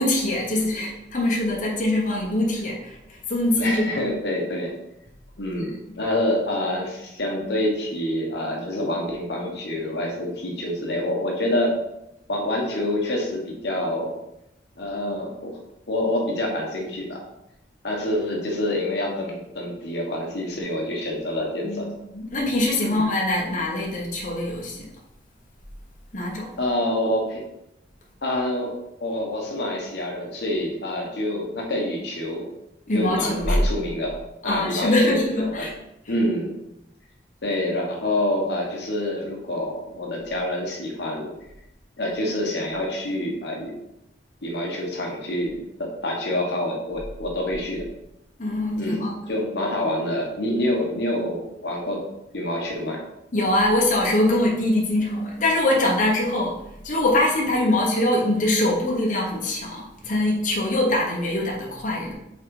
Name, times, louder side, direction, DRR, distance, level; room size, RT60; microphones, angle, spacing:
voice 1, 0.0-3.9 21.6-24.9 26.1-26.5 32.9-33.6 34.4-35.7 48.4-49.1 53.3-56.6 56.8-62.1, left 1 dB, 40° left, -2 dB, 1.1 m, -23 dB
voice 2, 3.6-4.7 5.4-11.8 12.3-14.1 14.8-15.6 15.9-17.2 17.8-21.9 22.8-23.0 26.6-27.4 28.2-28.7 29.0-32.5 32.9-35.7 36.1-36.6 37.4-41.3 42.0-43.7 44.4-47.9 48.7-52.0 52.3-53.0, left 1 dB, 60° left, -1 dB, 1.1 m, -27 dB
5.6 x 3.7 x 4.8 m, 0.85 s
head